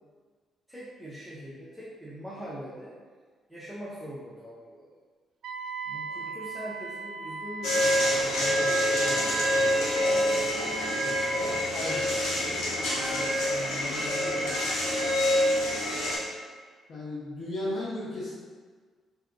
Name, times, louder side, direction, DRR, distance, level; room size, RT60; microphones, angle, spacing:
voice 1, 0.7-2.9 3.5-5.0 5.9-10.5 11.0-12.6 13.1-15.0, equal, ahead, -9 dB, 0.6 m, -42 dB
Wind instrument woodwind instrument, 5.4-11.7, right 4 dB, 70° right, 0.3 m, -39 dB
sound 1, 7.6-16.2, left 1 dB, 90° left, 0.8 m, -26 dB
voice 2, 16.9-18.3, left 1 dB, 60° left, -7 dB, 0.7 m, -34 dB
2.6 x 2.3 x 3.8 m, 1.5 s
cardioid pair, 90°, 0 cm